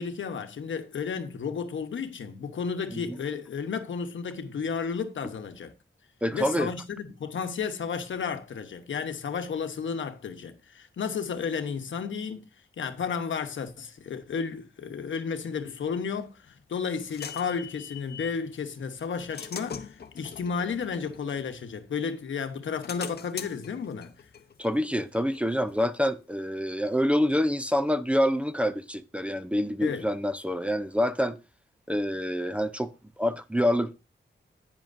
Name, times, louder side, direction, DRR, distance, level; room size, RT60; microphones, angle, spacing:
voice 1, 0.0-5.7 6.3-12.5 12.8-24.1 29.8-30.1, left 6 dB, 85° left, 1.0 m, -33 dB
voice 2, 6.2-6.7 24.6-31.4 31.9-32.9 33.2-33.9, equal, 5° right, 0.5 m, -26 dB
sound 1, 16.2-18.4 19.0-22.1 22.5-25.9, left 7 dB, 55° left, 0.7 m, -43 dB
10.5 x 8.9 x 2.6 m
wide cardioid pair, 145°, 19 cm